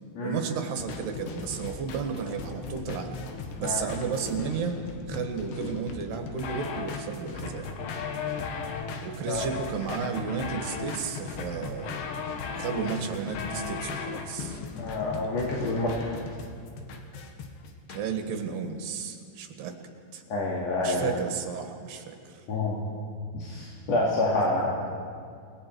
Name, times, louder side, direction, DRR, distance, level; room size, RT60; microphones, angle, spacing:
voice 1, 0.2-3.2 3.6-4.8 5.1-7.7 9.0-12.0 12.6-14.6 17.9-19.8 20.1-20.2 20.8-22.4, right 6 dB, 70° right, 5 dB, 3.5 m, -33 dB
sound 1, 0.8-18.0, left 5 dB, 80° left, 3.7 m, -37 dB
voice 2, 14.8-16.1 20.3-21.1 22.5-22.8 23.4-24.9, left 2 dB, 45° left, -4 dB, 2.9 m, -28 dB
29.5 x 20.0 x 4.6 m, 2.3 s
omnidirectional pair, 5.0 m